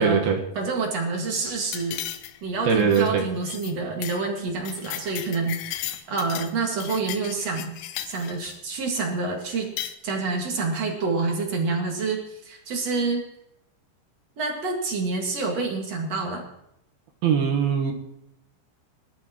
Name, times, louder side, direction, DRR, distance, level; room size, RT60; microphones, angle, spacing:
voice 1, 0.0-0.4 2.6-3.2 17.2-17.9, right 6 dB, 65° right, 2 dB, 2.8 m, -21 dB
voice 2, 0.6-2.0 2.4-7.7 8.1-9.7 10.0-13.3 14.4-16.4, right 3 dB, 50° right, 1 dB, 2.2 m, -27 dB
sound 1, 1.7-2.5 2.8-3.1 3.4-3.7 4.0-4.2 4.5-6.5 6.8-8.6 9.5-10.0, left 12 dB, 90° left, 3.4 m, -35 dB
21.0 x 12.5 x 3.0 m, 0.81 s
omnidirectional pair, 5.4 m